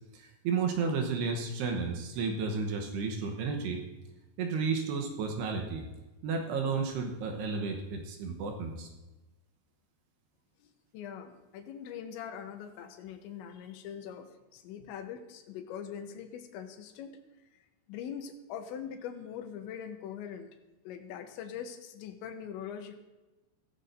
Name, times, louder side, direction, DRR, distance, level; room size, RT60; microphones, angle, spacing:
voice 1, 0.1-3.8 4.4-5.8 6.2-8.9, right 5 dB, 75° right, 3 dB, 2.9 m, -32 dB
voice 2, 10.6-17.2 17.9-20.5 20.8-23.0, left 8 dB, 85° left, 6 dB, 3.2 m, -42 dB
16.0 x 14.5 x 2.7 m, 1.1 s
omnidirectional pair, 5.3 m